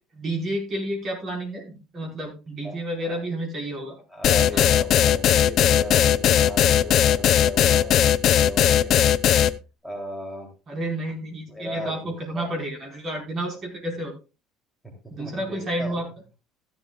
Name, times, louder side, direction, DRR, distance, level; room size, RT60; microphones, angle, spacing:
voice 1, 0.1-4.0 4.5-4.7 10.7-14.1 15.1-16.1, right 1 dB, 35° right, 1 dB, 4.8 m, -30 dB
voice 2, 2.6-3.2 4.1-9.0 9.8-10.5 11.5-12.5 15.2-16.0, equal, 5° right, 1 dB, 3.1 m, -37 dB
sound 1, 4.2-9.5, left 10 dB, 50° left, 0.5 m, -18 dB
15.0 x 11.5 x 2.4 m, 0.31 s
cardioid pair, 135°, 0 cm